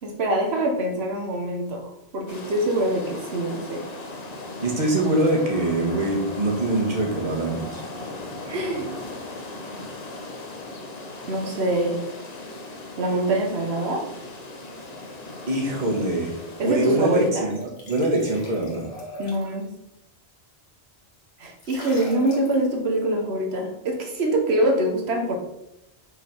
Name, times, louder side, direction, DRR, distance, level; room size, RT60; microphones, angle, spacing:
voice 1, 0.0-3.8 8.5-8.9 11.3-12.0 13.0-14.1 16.6-17.5 19.2-19.7 21.4-25.4, right 1 dB, 85° right, 2 dB, 1.2 m, -24 dB
sound 1, 2.3-17.3, left 2 dB, 40° left, 1.0 m, -38 dB
voice 2, 4.6-7.8 15.5-16.3 16.6-18.9, right 1 dB, 45° right, 0 dB, 1.5 m, -23 dB
sound 2, 17.5-19.6 21.6-22.7, left 1 dB, 75° left, 1.8 m, -40 dB
6.0 x 4.0 x 5.3 m, 0.87 s
omnidirectional pair, 1.0 m